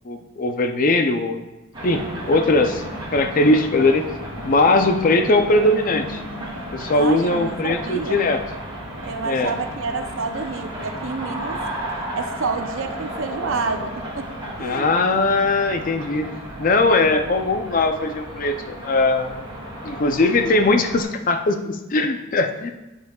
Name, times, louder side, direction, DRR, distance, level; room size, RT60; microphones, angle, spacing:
voice 1, 0.1-1.5 1.8-2.0 2.3-2.8 3.1-4.0 4.4-6.2 6.7-8.4 9.2-9.5 14.6-16.3 16.6-19.4 19.8-22.7, left 2 dB, 40° left, 7 dB, 0.5 m, -20 dB
sound 1, 1.7-21.0, equal, 25° right, 2.2 m, -33 dB
voice 2, 6.9-8.3 9.0-11.6 12.1-14.3 14.6-15.1, right 4 dB, 65° right, 7 dB, 0.6 m, -29 dB
10.5 x 5.7 x 2.3 m, 1.1 s
head